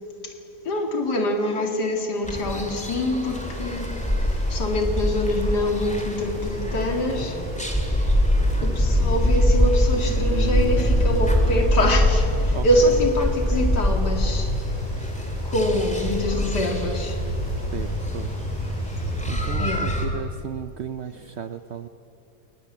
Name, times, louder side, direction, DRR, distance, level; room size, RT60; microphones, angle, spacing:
voice 1, 0.7-3.9 4.2-7.4 8.6-14.5 15.4-17.2 19.6-19.9, left 1 dB, 85° left, 4 dB, 2.8 m, -25 dB
sound 1, 2.2-20.1, equal, 5° left, 2.5 m, -24 dB
Water, 2.7-19.9, equal, 20° left, 7.2 m, -48 dB
sound 2, 10.0-12.6, right 1 dB, 75° right, 4.7 m, -35 dB
voice 2, 12.5-12.9 17.5-18.3 19.3-21.9, right 8 dB, 60° right, 10 dB, 0.7 m, -35 dB
22.0 x 19.5 x 8.4 m, 2.7 s
omnidirectional pair, 1.7 m